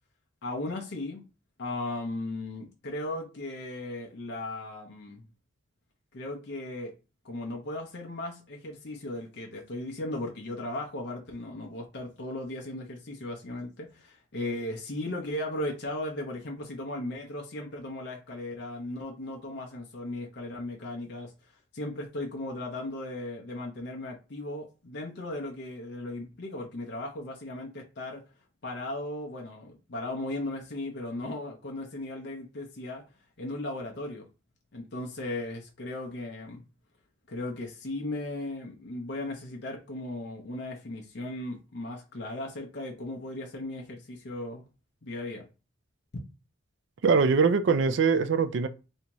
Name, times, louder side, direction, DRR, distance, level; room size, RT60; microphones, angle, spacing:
voice 1, 0.4-1.2 1.6-5.3 6.1-6.9 7.2-21.3 21.7-28.2 28.6-33.0 33.4-34.3 34.7-36.6 37.3-44.7 45.0-45.5, left 1 dB, 55° left, 0.6 m, -36 dB
voice 2, 47.0-48.7, right 5 dB, 60° right, 0.4 m, -22 dB
3.4 x 2.7 x 3.0 m
head